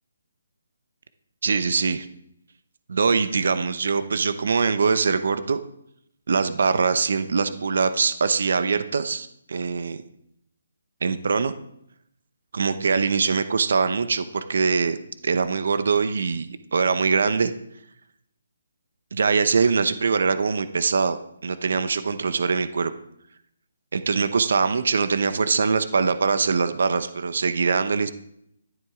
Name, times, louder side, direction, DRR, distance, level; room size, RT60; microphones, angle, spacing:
voice 1, 1.4-2.1 2.9-5.6 6.3-10.0 11.0-11.5 12.5-15.0 15.2-17.5 19.1-21.2 21.4-22.9 23.9-28.1, right 5 dB, 65° right, 11 dB, 0.8 m, -23 dB
12.5 x 11.0 x 3.7 m, 0.74 s
hypercardioid pair, 155°, 0 cm